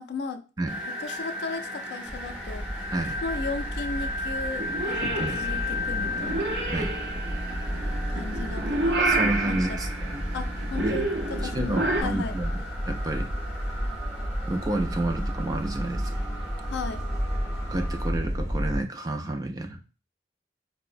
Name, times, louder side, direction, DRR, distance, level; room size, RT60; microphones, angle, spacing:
voice 1, 0.0-0.4 0.9-2.7 3.2-6.6 8.1-9.0 9.5-9.8 10.3-11.1 11.4-12.4 16.6-17.0, left 4 dB, 70° left, 0.4 m, -36 dB
sound 1, 0.7-18.1, left 1 dB, ahead, 1.3 m, -36 dB
sound 2, 2.0-18.8, equal, 20° left, 0.8 m, -32 dB
Purr / Meow, 4.6-12.0, right 2 dB, 65° right, 0.7 m, -30 dB
voice 2, 9.0-9.9 10.8-11.0 11.4-12.5 12.9-13.3 14.5-16.1 17.7-19.8, right 2 dB, 20° right, 0.3 m, -30 dB
4.6 x 2.0 x 2.5 m
head